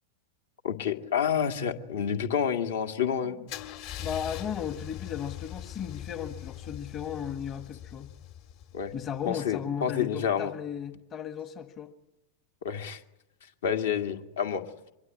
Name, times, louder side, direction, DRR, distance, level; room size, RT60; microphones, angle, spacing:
voice 1, 0.6-3.4 8.7-8.9 9.3-10.5 12.6-13.0 13.6-14.6, left 8 dB, 60° left, 6 dB, 2.1 m, -29 dB
Car / Engine starting / Idling, 3.5-9.3, left 11 dB, 45° left, 2.0 m, -41 dB
voice 2, 4.0-8.1 8.9-11.9, left 8 dB, 30° left, 10 dB, 1.5 m, -35 dB
24.5 x 23.0 x 9.5 m, 0.91 s
figure-of-eight pair, 90°, 0 cm